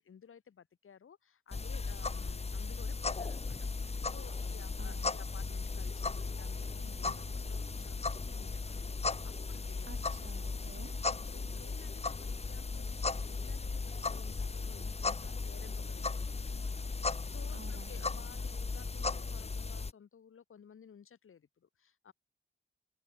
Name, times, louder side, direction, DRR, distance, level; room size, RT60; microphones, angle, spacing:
voice 1, 0.0-8.7 9.0-9.9 11.1-22.1, left 7 dB, 80° left, 1.8 m, -56 dB
sound 1, 1.5-19.9, left 4 dB, 30° left, 0.7 m, -36 dB
voice 2, 4.8-5.1 9.9-10.9 17.5-18.0, right 5 dB, 60° right, 1.9 m, -52 dB
sound 2, 6.0-11.7, right 6 dB, 85° right, 6.8 m, -62 dB
open air
cardioid pair, 50°, 21 cm